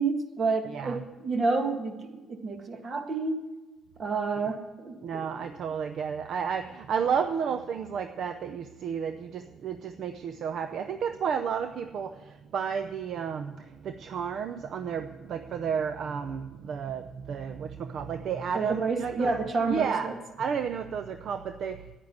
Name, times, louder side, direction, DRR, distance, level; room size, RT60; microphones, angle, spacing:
voice 1, 0.0-3.4 4.0-5.5 18.5-20.2, right 4 dB, 45° right, 6 dB, 1.8 m, -29 dB
voice 2, 0.7-1.0 5.0-19.3 19.7-20.1 20.4-22.0, right 7 dB, 60° right, 8 dB, 0.6 m, -32 dB
10.5 x 9.9 x 9.5 m, 1.2 s
cardioid pair, 100°, 0 cm